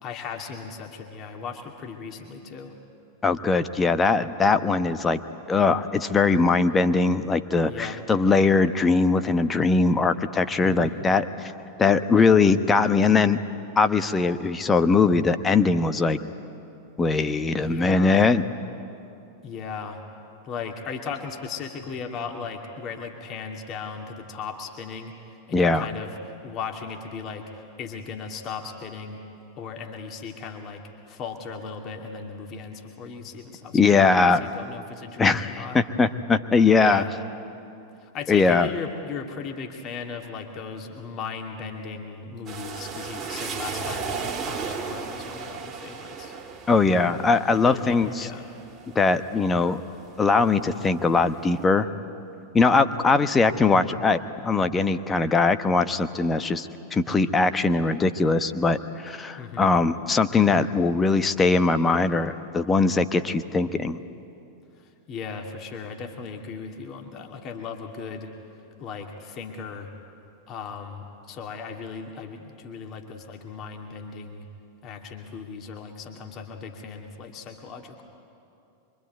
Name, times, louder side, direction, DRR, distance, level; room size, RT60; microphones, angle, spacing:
voice 1, 0.0-2.7 7.6-8.0 10.6-11.0 17.6-18.2 19.4-20.0 20.4-25.1 25.5-26.1 26.4-29.2 29.6-35.8 36.8-37.1 38.0-46.4 47.5-48.5 59.4-59.7 64.8-68.3 68.8-69.9 70.5-74.4 74.8-78.0, left 5 dB, 35° left, 3 dB, 2.5 m, -37 dB
voice 2, 3.2-5.2 5.5-11.5 11.8-13.4 13.8-16.2 17.0-18.4 25.5-25.9 33.7-34.4 35.2-37.0 38.3-38.7 46.7-48.3 48.9-49.8 50.2-51.9 52.5-64.0, left 4 dB, 15° left, 11 dB, 1.1 m, -21 dB
sound 1, 42.5-50.1 50.6-51.4, right 5 dB, 25° right, 2.3 m, -35 dB
24.5 x 24.5 x 9.4 m, 2.7 s
figure-of-eight pair, 90°, 0 cm